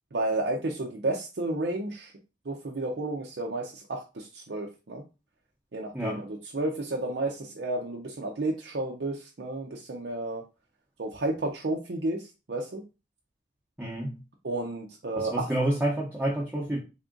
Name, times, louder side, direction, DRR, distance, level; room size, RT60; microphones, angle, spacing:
voice 1, 0.1-2.1 2.5-5.0 5.7-10.4 11.0-12.8 14.4-15.5, right 2 dB, 65° right, 0.5 m, -32 dB
voice 2, 13.8-14.2 15.2-16.8, right 1 dB, 10° right, 0.8 m, -29 dB
3.6 x 2.4 x 3.7 m
head